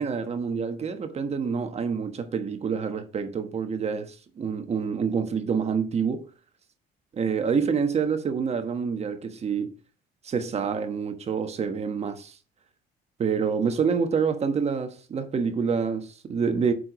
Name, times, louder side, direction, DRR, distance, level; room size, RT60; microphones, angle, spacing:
voice 1, 0.0-6.3 7.1-9.7 10.2-12.4 13.2-16.7, right 6 dB, 40° right, 1.3 m, -27 dB
7.7 x 5.9 x 4.9 m
cardioid pair, 110°, 17 cm